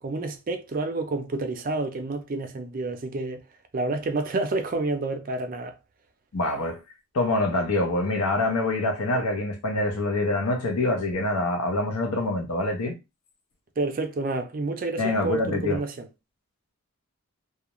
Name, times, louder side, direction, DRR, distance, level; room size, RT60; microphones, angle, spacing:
voice 1, 0.0-3.4 3.7-5.7 13.8-16.1, right 2 dB, 40° right, 0.4 m, -29 dB
voice 2, 6.3-6.8 7.1-12.9 15.0-15.8, left 2 dB, 85° left, 0.7 m, -25 dB
2.3 x 2.1 x 2.9 m
head